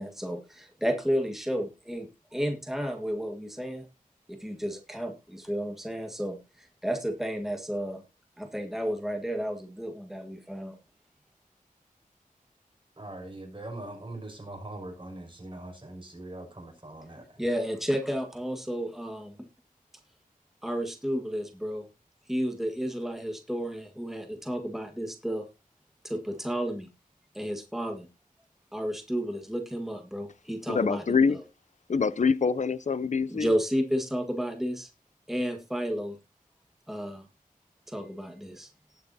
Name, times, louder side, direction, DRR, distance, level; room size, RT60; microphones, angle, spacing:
voice 1, 0.0-3.8 4.3-8.0 8.4-10.8 17.4-19.5 20.6-21.9 22.3-25.5 26.0-26.9 27.3-28.1 28.7-31.0 33.3-34.9 35.3-36.2 36.9-37.2 37.9-38.7, equal, ahead, 1.6 m, -32 dB
voice 2, 13.0-17.4, right 1 dB, 35° right, 5.7 m, -42 dB
voice 3, 30.7-31.4 31.9-33.5, left 5 dB, 55° left, 0.5 m, -25 dB
19.0 x 6.9 x 2.7 m
wide cardioid pair, 75°, 15 cm